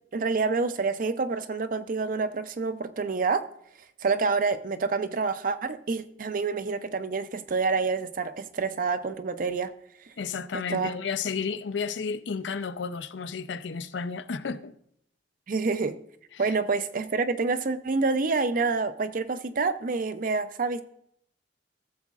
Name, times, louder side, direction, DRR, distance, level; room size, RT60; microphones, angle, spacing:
voice 1, 0.1-3.4 4.0-9.7 10.7-10.9 15.5-15.9 16.4-20.8, right 4 dB, 50° right, 0.6 m, -27 dB
voice 2, 10.2-14.7 16.3-16.6, left 5 dB, 85° left, 0.5 m, -32 dB
14.5 x 7.3 x 2.4 m
head